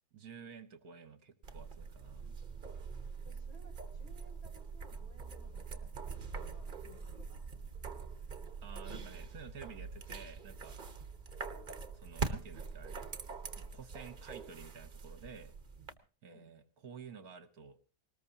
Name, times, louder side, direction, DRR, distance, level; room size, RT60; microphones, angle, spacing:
voice 1, 0.1-2.3 8.6-10.8 11.9-13.0 13.6-15.5 16.2-17.8, right 6 dB, 55° right, 11 dB, 1.3 m, -51 dB
sound 1, 1.4-15.9, right 4 dB, 35° right, 0.9 m, -44 dB
voice 2, 3.2-7.8 16.3-16.5, left 1 dB, 85° left, 3 dB, 4.5 m, -61 dB
20.0 x 19.5 x 2.9 m, 0.35 s
omnidirectional pair, 2.1 m